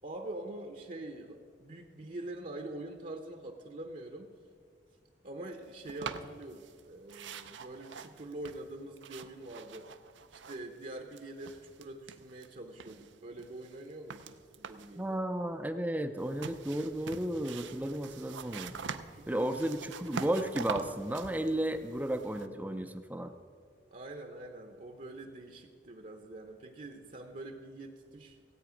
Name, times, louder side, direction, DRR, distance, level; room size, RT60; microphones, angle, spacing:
voice 1, 0.0-4.3 5.2-9.9 10.3-15.2 19.1-19.6 23.9-28.4, right 2 dB, 45° right, 5 dB, 0.8 m, -45 dB
sound 1, 5.9-6.8 7.1-10.8 11.1-12.5 12.8-15.0 16.2-22.5, right 5 dB, 85° right, 0.6 m, -44 dB
voice 2, 15.0-18.7 19.3-23.3, right 1 dB, 10° right, 8 dB, 0.5 m, -33 dB
16.5 x 8.6 x 5.1 m, 2.1 s
head